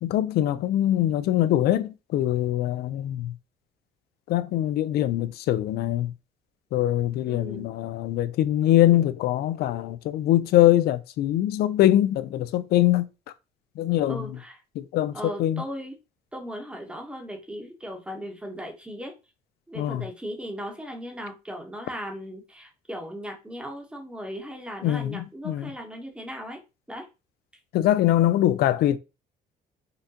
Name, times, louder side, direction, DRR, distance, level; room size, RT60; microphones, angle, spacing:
voice 1, 0.0-3.3 4.3-6.1 6.7-13.1 13.8-14.3 14.8-15.6 19.8-20.0 24.8-25.7 27.7-29.0, left 13 dB, 70° left, 0.4 m, -23 dB
voice 2, 7.2-7.7 9.6-9.7 14.1-14.6 15.1-15.9 16.3-19.1 19.7-26.6 26.9-27.1, equal, 5° right, 0.9 m, -37 dB
3.8 x 2.2 x 2.7 m
cardioid pair, 110°, 17 cm